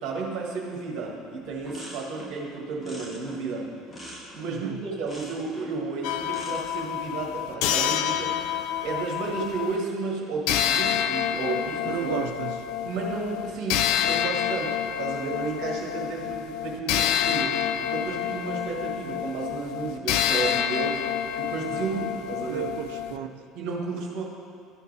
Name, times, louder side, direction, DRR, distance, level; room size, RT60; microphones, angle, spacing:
voice 1, 0.0-3.7 4.3-8.3 8.8-12.1 12.8-17.5 17.8-21.0 21.4-22.7 23.6-24.2, right 4 dB, 45° right, -2 dB, 1.6 m, -32 dB
sound 1, 1.0-1.2 1.5-2.4 2.8-4.6 5.0-5.8 6.3-6.8 7.6-8.3 9.1-9.6, equal, 25° left, 1.7 m, -43 dB
voice 2, 4.4-4.8 11.8-12.7 17.2-17.7 21.7-22.0 22.4-23.4, right 8 dB, 60° right, 7 dB, 0.4 m, -34 dB
sound 2, 6.0-9.8 10.5-23.2, left 9 dB, 55° left, 0.3 m, -28 dB
12.0 x 4.5 x 4.8 m, 2.3 s
figure-of-eight pair, 60°, 0 cm